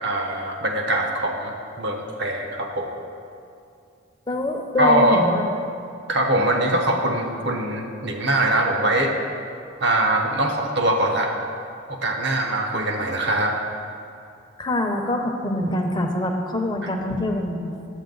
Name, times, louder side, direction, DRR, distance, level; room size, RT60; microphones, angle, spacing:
voice 1, 0.0-2.9 4.8-5.2 6.1-9.1 9.8-11.3 11.9-13.6 16.8-16.9, right 1 dB, 60° right, 2 dB, 1.0 m, -22 dB
voice 2, 4.3-5.4 14.6-17.9, left 1 dB, 20° left, 2 dB, 0.8 m, -24 dB
11.0 x 8.0 x 3.9 m, 2.5 s
head